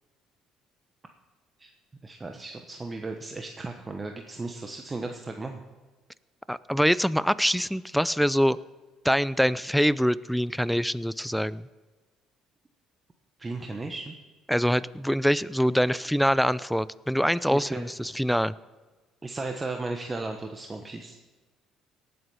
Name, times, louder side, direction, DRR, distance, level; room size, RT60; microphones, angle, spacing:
voice 1, 2.0-5.6 13.4-14.1 17.5-17.9 19.2-21.2, right 3 dB, 20° right, 4 dB, 1.1 m, -35 dB
voice 2, 6.5-8.6 9.0-11.6 14.5-18.5, equal, ahead, 19 dB, 0.4 m, -24 dB
18.5 x 8.0 x 5.7 m, 1.3 s
cardioid pair, 105°, 0 cm